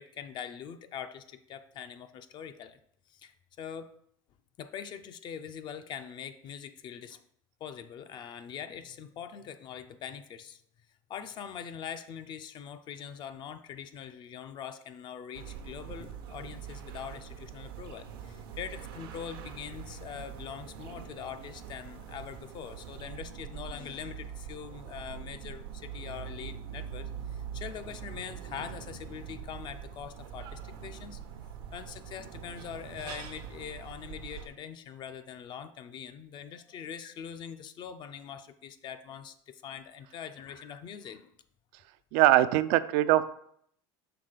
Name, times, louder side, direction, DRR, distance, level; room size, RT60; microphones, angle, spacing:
voice 1, 0.0-2.8 3.1-4.0 4.6-7.2 7.6-10.6 11.1-41.3, left 8 dB, 40° left, 10 dB, 0.4 m, -43 dB
sound 1, 15.3-34.5, right 8 dB, 80° right, 0.8 m, -43 dB
voice 2, 42.1-43.2, right 14 dB, 65° right, 13 dB, 0.4 m, -22 dB
5.9 x 3.6 x 5.0 m, 0.69 s
supercardioid pair, 125°, 12 cm